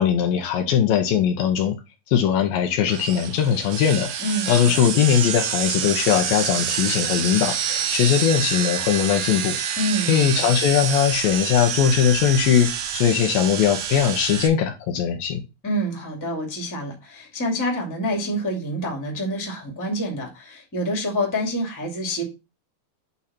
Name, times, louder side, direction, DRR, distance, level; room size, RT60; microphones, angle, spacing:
voice 1, 0.0-1.8 2.1-4.1 4.5-9.8 10.1-15.4, left 9 dB, 75° left, 5 dB, 2.5 m, -20 dB
sound 1, 2.9-14.5, right 8 dB, 70° right, 2.1 m, -27 dB
voice 2, 4.2-4.6 9.8-10.4 15.6-22.2, equal, 5° left, 0 dB, 1.5 m, -27 dB
8.4 x 3.9 x 4.2 m, 0.26 s
omnidirectional pair, 4.5 m